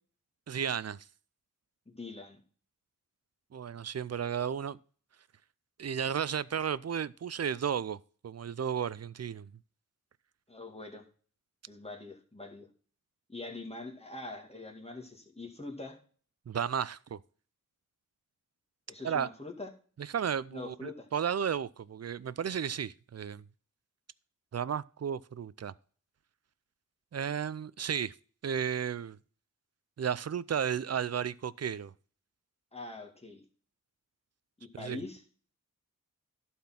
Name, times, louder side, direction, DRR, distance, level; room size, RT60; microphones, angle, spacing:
voice 1, 0.5-1.0 3.5-4.8 5.8-9.5 16.5-17.2 19.0-19.3 20.0-23.4 24.5-25.7 27.1-28.1 28.4-29.2 30.0-31.9 34.7-35.0, right 8 dB, 50° right, 0.5 m, -33 dB
voice 2, 1.9-2.4 10.5-11.0 11.7-12.7 13.3-16.0 18.9-19.7 20.5-21.1 32.7-33.4 34.6-35.2, left 3 dB, 20° left, 2.1 m, -43 dB
12.0 x 4.4 x 5.8 m
wide cardioid pair, 55°, 33 cm